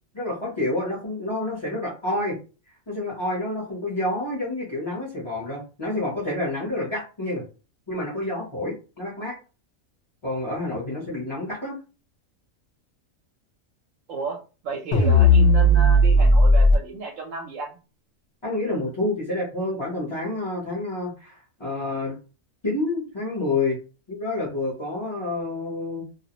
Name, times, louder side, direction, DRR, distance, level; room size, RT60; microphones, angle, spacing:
voice 1, 0.1-2.4 2.9-7.4 7.9-9.4 10.2-11.8 18.4-22.1 22.6-23.8 24.1-26.0, left 2 dB, 25° left, -6 dB, 0.7 m, -28 dB
voice 2, 14.1-17.7, right 3 dB, 75° right, 0 dB, 1.0 m, -33 dB
sound 1, 14.9-16.8, left 1 dB, 70° left, 0.8 m, -15 dB
2.4 x 2.0 x 2.8 m, 0.33 s
omnidirectional pair, 1.3 m